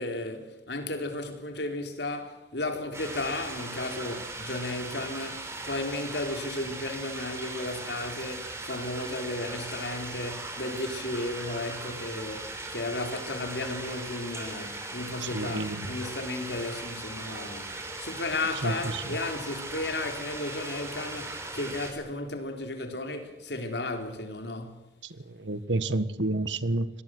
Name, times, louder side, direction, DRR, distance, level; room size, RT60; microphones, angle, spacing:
voice 1, 0.0-17.7 18.0-24.9, left 2 dB, 70° left, 4.2 m, -34 dB
sound 1, 2.9-21.9, right 2 dB, 15° right, 4.3 m, -39 dB
voice 2, 15.3-15.9 18.6-18.7 25.5-26.9, right 2 dB, 80° right, 1.6 m, -28 dB
24.5 x 19.5 x 7.9 m
head